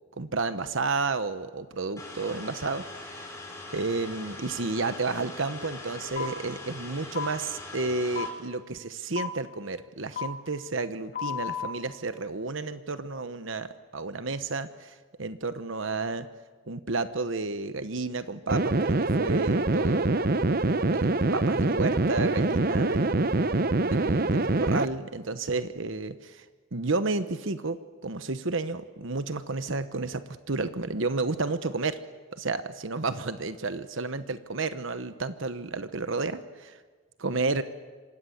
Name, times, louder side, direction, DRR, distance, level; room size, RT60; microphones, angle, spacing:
voice 1, 0.2-3.3 3.7-13.7 13.9-16.3 16.7-20.2 20.9-23.3 23.8-26.4 26.7-32.0 32.3-36.8 37.2-37.6, right 3 dB, 60° right, 11 dB, 1.1 m, -31 dB
sound 1, 2.0-8.3, left 2 dB, 15° left, 6.2 m, -42 dB
sound 2, 6.2-6.3 7.1-7.3 8.1-8.3 9.1-9.3 10.1-10.3 11.1-11.7, left 8 dB, 40° left, 2.3 m, -32 dB
sound 3, 18.5-24.9, right 2 dB, 45° right, 0.8 m, -24 dB
27.5 x 26.0 x 8.0 m, 1.4 s
head